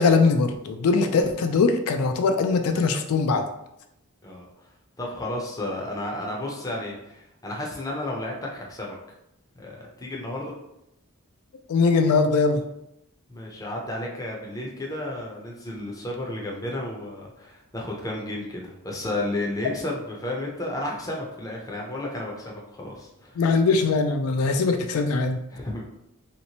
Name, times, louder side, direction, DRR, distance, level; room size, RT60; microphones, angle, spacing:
voice 1, 0.0-3.4 11.7-12.6 19.6-19.7 23.4-25.4, left 4 dB, 75° left, 6 dB, 0.3 m, -21 dB
voice 2, 5.0-9.0 9.6-10.5 13.3-23.4 25.5-25.8, left 1 dB, 15° left, -1 dB, 0.5 m, -32 dB
3.0 x 2.9 x 2.8 m, 0.84 s
head